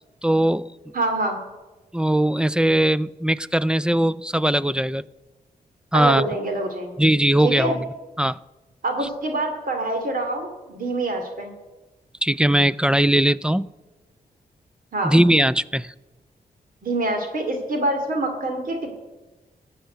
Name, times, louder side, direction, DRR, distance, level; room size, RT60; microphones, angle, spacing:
voice 1, 0.2-0.7 1.9-5.0 5.9-6.3 7.0-7.8 8.2-8.4 12.2-13.7 15.0-15.9, right 1 dB, 5° right, 19 dB, 0.4 m, -19 dB
voice 2, 0.9-1.4 5.9-6.9 7.4-7.8 8.8-11.5 14.9-15.1 16.8-19.0, right 2 dB, 60° right, 5 dB, 2.5 m, -25 dB
15.0 x 5.7 x 9.3 m, 1.1 s
cardioid pair, 70°, 16 cm